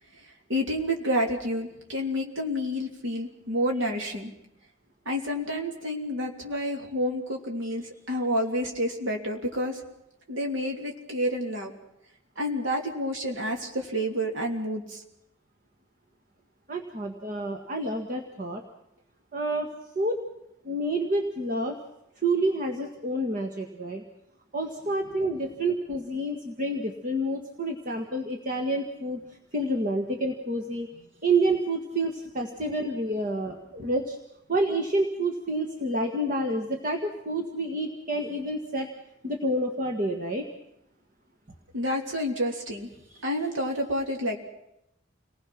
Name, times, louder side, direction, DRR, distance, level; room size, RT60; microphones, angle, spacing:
voice 1, 0.5-4.3 5.0-9.8 10.3-11.7 12.4-15.0 41.7-42.9 43.2-44.4, equal, 75° right, 1 dB, 3.3 m, -29 dB
voice 2, 16.7-18.6 19.3-19.7 20.0-20.2 20.6-21.8 22.2-24.0 24.5-29.2 29.5-30.9 31.2-34.2 34.5-38.9 39.2-40.5, right 1 dB, 45° right, 3 dB, 1.8 m, -28 dB
29.0 x 20.0 x 6.1 m, 0.84 s
head